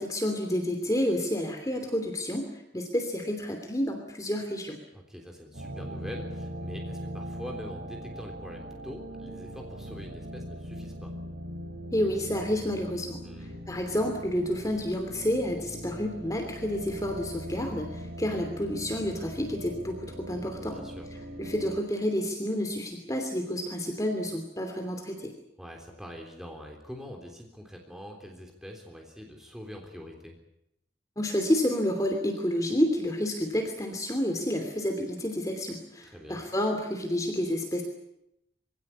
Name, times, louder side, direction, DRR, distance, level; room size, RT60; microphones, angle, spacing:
voice 1, 0.0-4.8 11.9-13.2 13.7-20.8 21.4-25.3 31.2-37.8, equal, 20° left, 4 dB, 2.9 m, -29 dB
voice 2, 4.9-11.1 13.2-13.6 20.6-21.1 25.6-30.4 36.0-36.4, equal, 5° right, 1 dB, 3.5 m, -44 dB
sound 1, 5.5-21.8, equal, 80° right, 3.3 m, -40 dB
25.0 x 17.0 x 9.9 m, 0.82 s
head